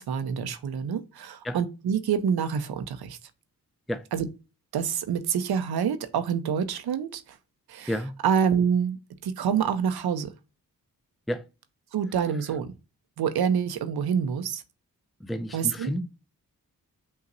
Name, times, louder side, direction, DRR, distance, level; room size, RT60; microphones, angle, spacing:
voice 1, 0.0-3.2 4.1-4.3 4.7-7.4 7.7-7.9 8.2-10.3 11.9-12.7 13.2-14.6 15.5-15.9, right 7 dB, 80° right, 0.7 m, -27 dB
voice 2, 15.2-16.1, equal, ahead, 0.5 m, -30 dB
5.4 x 2.9 x 2.5 m
cardioid pair, 45°, 37 cm